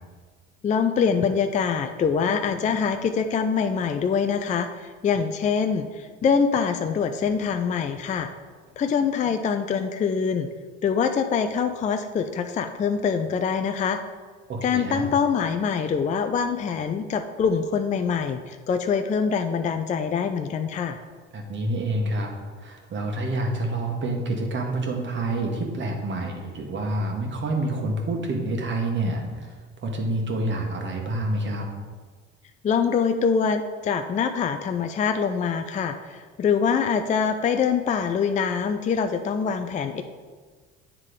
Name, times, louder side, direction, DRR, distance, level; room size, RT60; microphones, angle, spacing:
voice 1, 0.6-8.3 8.8-10.5 10.8-14.0 14.6-21.0 32.6-40.0, left 6 dB, 25° left, 7 dB, 0.4 m, -24 dB
voice 2, 14.5-15.0 21.3-22.3 22.6-29.5 29.8-31.7, right 2 dB, 40° right, 1 dB, 1.5 m, -28 dB
8.1 x 3.6 x 5.0 m, 1.5 s
supercardioid pair, 80°, 30 cm